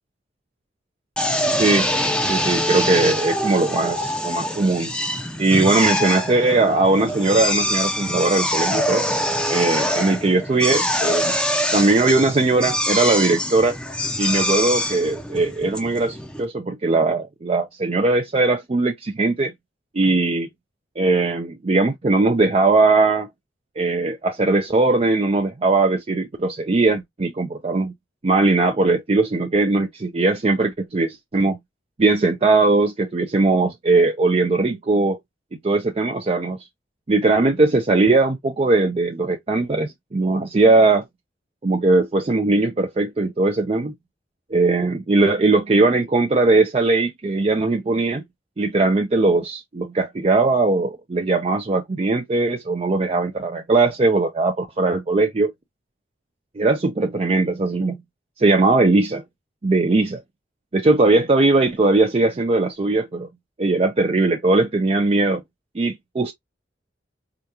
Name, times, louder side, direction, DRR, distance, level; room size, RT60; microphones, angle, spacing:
Drill, 1.2-16.4, equal, 5° left, 0.6 m, -24 dB
voice 1, 1.6-1.9 2.3-4.9 5.4-9.1 9.5-11.4 11.7-13.8 14.2-19.5 19.9-20.5 21.0-23.3 23.8-27.9 28.2-31.6 32.0-35.2 35.6-36.6 37.1-41.0 41.6-43.9 44.5-48.2 48.6-55.5 56.6-58.0 58.4-59.2 59.6-60.2 60.7-63.3 63.6-65.4 65.7-66.3, right 3 dB, 35° right, 0.5 m, -19 dB
4.9 x 2.3 x 2.7 m
head